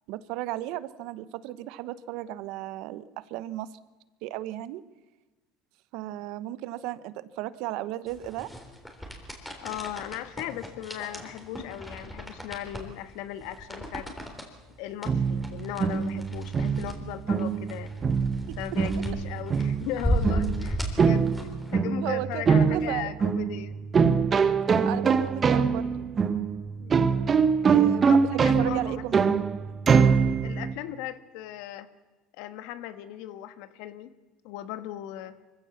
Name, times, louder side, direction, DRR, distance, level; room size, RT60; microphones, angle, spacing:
voice 1, 0.1-3.7 4.2-4.8 5.9-8.5 18.5-18.6 22.0-22.4 22.7-23.1 24.9-26.1 27.7-29.2, right 15 dB, 70° right, 16 dB, 0.9 m, -35 dB
sound 1, 8.1-21.7, equal, 5° left, 3.7 m, -35 dB
voice 2, 9.6-14.1 14.8-17.9 18.6-23.8 26.8-27.0 28.0-29.3 30.4-31.9 32.4-34.1 34.4-35.3, left 12 dB, 70° left, 12 dB, 1.5 m, -37 dB
sound 2, 15.1-30.7, right 6 dB, 30° right, 1.2 m, -24 dB
24.0 x 15.5 x 7.2 m, 1.2 s
supercardioid pair, 115°, 0 cm